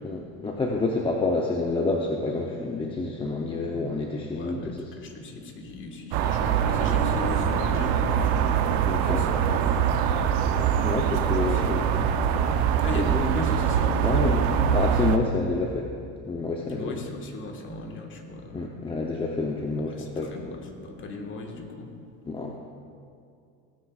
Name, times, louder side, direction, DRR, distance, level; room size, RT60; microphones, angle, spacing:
voice 1, 0.0-4.9 8.9-9.2 10.8-11.9 12.9-13.2 14.0-14.4 14.7-15.9 16.2-17.0 18.5-20.4 22.3-22.6, left 3 dB, 15° left, 0 dB, 0.7 m, -28 dB
voice 2, 4.3-8.4 9.0-9.7 11.5-12.3 12.8-14.9 16.7-18.7 19.9-21.9, left 2 dB, 35° left, 2 dB, 1.6 m, -36 dB
sound 1, 6.1-15.2, right 8 dB, 70° right, 0.8 m, -23 dB
17.5 x 9.3 x 2.4 m, 2.4 s
cardioid pair, 130°, 35 cm